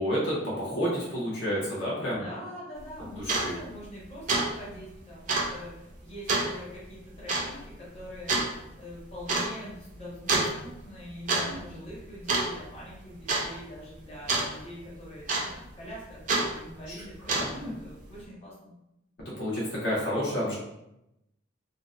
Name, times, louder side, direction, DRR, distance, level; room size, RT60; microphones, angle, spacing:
voice 1, 0.0-2.3 3.0-3.6 11.3-11.6 16.9-17.0 17.3-17.7 19.3-20.5, equal, 60° left, -6 dB, 0.7 m, -30 dB
voice 2, 2.1-18.7, equal, 30° left, -7 dB, 0.8 m, -44 dB
sound 1, 2.8-2.9 3.2-3.5 3.9-4.0 4.3-4.5 4.7-4.8 5.3-5.5 6.3-6.5 7.3-7.5 8.3-8.5 9.3-9.5 10.3-10.5 11.1-11.5 11.7-12.0 12.3-12.8 13.3-13.5 14.3-14.5 15.3-15.7 16.3-16.5 17.1-17.6, right 3 dB, 40° right, 0.4 m, -26 dB
2.6 x 2.0 x 2.4 m, 0.87 s
head